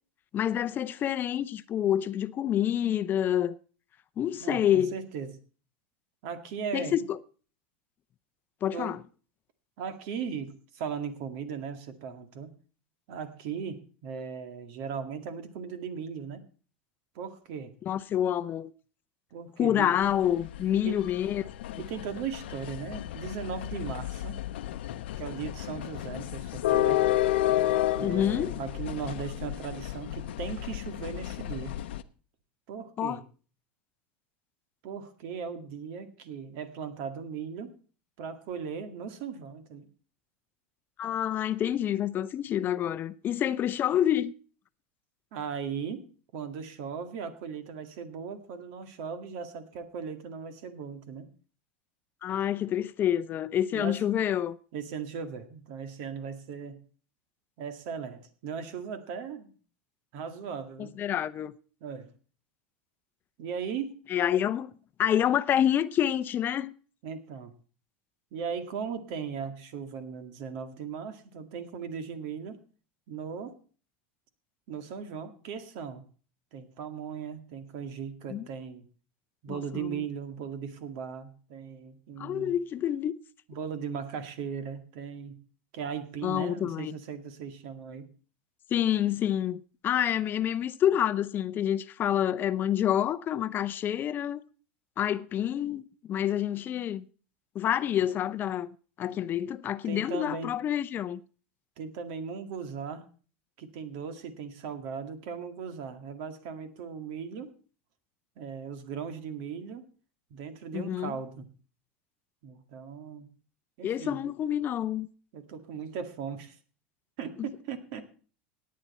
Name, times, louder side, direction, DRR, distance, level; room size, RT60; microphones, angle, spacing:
voice 1, 0.3-3.6 4.2-4.9 6.7-7.2 8.6-9.0 17.9-18.7 19.6-21.8 28.0-28.5 33.0-33.2 41.0-44.3 52.2-54.6 60.8-61.5 64.1-64.7 65.0-66.7 78.3-78.5 79.5-80.0 82.2-83.1 86.2-87.0 88.7-94.4 95.0-95.8 96.1-97.0 97.5-98.7 99.0-101.2 110.7-111.1 113.8-115.1, left 10 dB, 35° left, 0.6 m, -28 dB
voice 2, 4.4-5.4 6.2-7.0 8.7-9.0 9.8-12.6 13.1-16.4 17.2-17.7 19.3-20.0 20.8-21.0 21.8-24.4 25.2-27.1 28.0-31.8 32.7-33.2 34.8-37.7 38.2-39.9 45.3-46.0 46.3-51.3 53.7-54.0 54.7-56.8 57.6-59.5 60.1-61.0 61.8-62.1 63.4-63.9 67.0-67.5 68.3-72.6 73.1-73.6 74.7-76.0 76.5-78.9 79.4-82.5 83.5-85.4 85.7-88.1 99.9-100.5 101.8-103.1 103.6-107.5 108.4-109.8 110.3-111.5 112.4-113.3 113.8-114.2 115.3-116.6 117.2-118.1, right 6 dB, 65° right, 2.1 m, -38 dB
sound 1, 20.0-32.0, left 14 dB, 80° left, 0.8 m, -31 dB
17.5 x 9.5 x 4.3 m
supercardioid pair, 110°, 6 cm